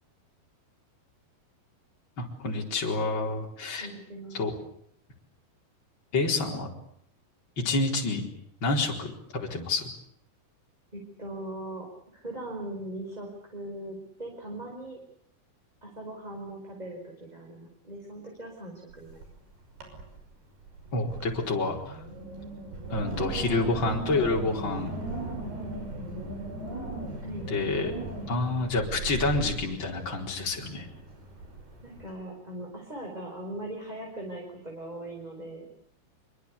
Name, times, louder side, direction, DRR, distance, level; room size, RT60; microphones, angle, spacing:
voice 1, 2.2-3.9 4.3-4.5 6.1-6.7 7.6-8.2 8.6-9.9 20.9-22.0 22.9-24.9 27.5-27.9 28.3-30.9, left 3 dB, 30° left, -1 dB, 4.9 m, -28 dB
voice 2, 3.8-4.4 10.9-11.9 12.1-15.0 15.8-19.3 27.2-27.5 31.8-35.7, right 1 dB, 10° right, 0 dB, 4.8 m, -40 dB
Wind, 18.9-19.4 19.7-20.2 20.6-32.1, right 2 dB, 80° right, 7.8 m, -38 dB
26.0 x 24.5 x 8.4 m, 0.69 s
omnidirectional pair, 4.6 m